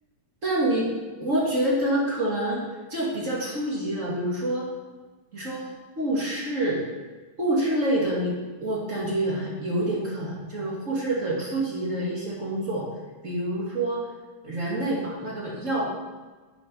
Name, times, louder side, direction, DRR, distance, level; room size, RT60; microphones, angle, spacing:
voice 1, 0.4-0.9 1.2-2.6 2.9-4.7 5.3-5.7 6.0-6.8 7.4-8.3 8.6-12.9 13.2-14.1 14.4-15.8, right 1 dB, 30° right, -5 dB, 2.1 m, -27 dB
9.6 x 6.9 x 5.5 m, 1.3 s
omnidirectional pair, 3.4 m